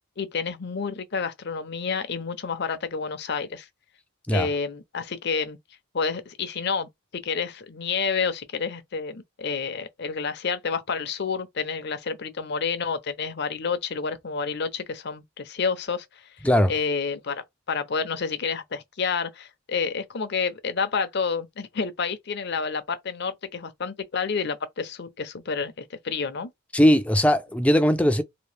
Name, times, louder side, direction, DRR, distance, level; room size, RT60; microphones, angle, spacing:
voice 1, 0.2-3.7 4.3-5.6 5.9-16.3 16.7-26.5, left 5 dB, 55° left, 0.6 m, -29 dB
voice 2, 26.7-28.2, equal, 5° left, 0.4 m, -19 dB
2.9 x 2.8 x 3.3 m
head